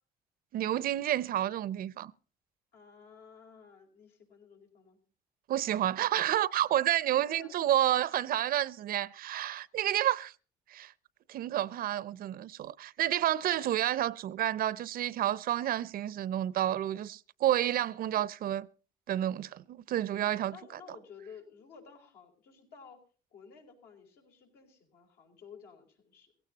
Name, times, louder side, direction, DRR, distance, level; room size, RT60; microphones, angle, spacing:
voice 1, 0.5-2.1 5.5-10.3 10.7-10.9 11.3-18.7 19.1-20.6, right 12 dB, 60° right, 0.6 m, -30 dB
voice 2, 2.7-5.0 7.1-7.6 20.5-23.0 23.3-26.3, left 6 dB, 75° left, 4.9 m, -53 dB
16.5 x 16.0 x 4.0 m
cardioid pair, 110°, 17 cm